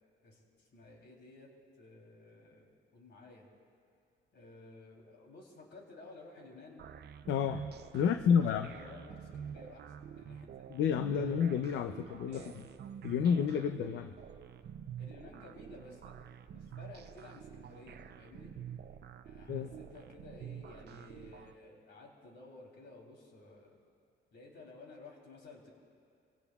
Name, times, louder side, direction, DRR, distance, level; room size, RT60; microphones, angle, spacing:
voice 1, 0.2-1.5 1.8-3.5 4.3-6.8 7.9-10.7 11.1-11.4 12.3-12.6 15.0-16.1 16.5-18.5 19.2-23.8 24.3-25.7, left 2 dB, 60° left, -1 dB, 3.4 m, -54 dB
sound 1, 6.8-21.6, right 8 dB, 55° right, 0.6 m, -48 dB
voice 2, 7.3-7.7 7.9-8.7 10.7-12.4 13.0-14.1 19.5-19.7, left 7 dB, 75° left, 8 dB, 0.6 m, -30 dB
25.5 x 17.0 x 2.4 m, 2.4 s
cardioid pair, 90°, 20 cm